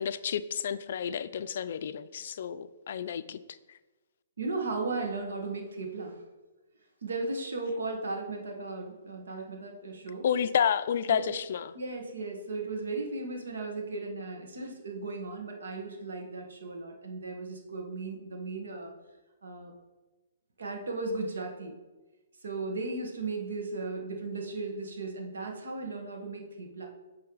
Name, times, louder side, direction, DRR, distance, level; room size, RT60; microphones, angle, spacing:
voice 1, 0.0-3.4 10.2-11.7, left 8 dB, 55° left, 14 dB, 0.3 m, -30 dB
voice 2, 4.4-6.2 7.0-10.2 11.1-11.4 11.7-18.9 19.4-19.7 20.6-21.7 22.4-26.9, right 3 dB, 90° right, 2 dB, 1.4 m, -36 dB
8.6 x 3.3 x 3.9 m, 1.2 s
hypercardioid pair, 165°, 0 cm